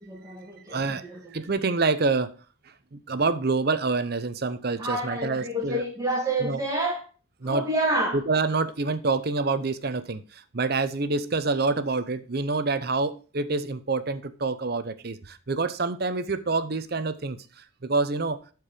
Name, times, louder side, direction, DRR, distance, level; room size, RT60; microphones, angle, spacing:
voice 1, 0.1-1.2 4.8-7.0 7.4-8.2, right 1 dB, 15° right, 2.2 m, -28 dB
voice 2, 0.7-2.3 2.9-5.8 6.4-6.6 7.4-7.7 8.1-18.5, right 3 dB, 45° right, 0.7 m, -27 dB
12.5 x 4.7 x 5.0 m
head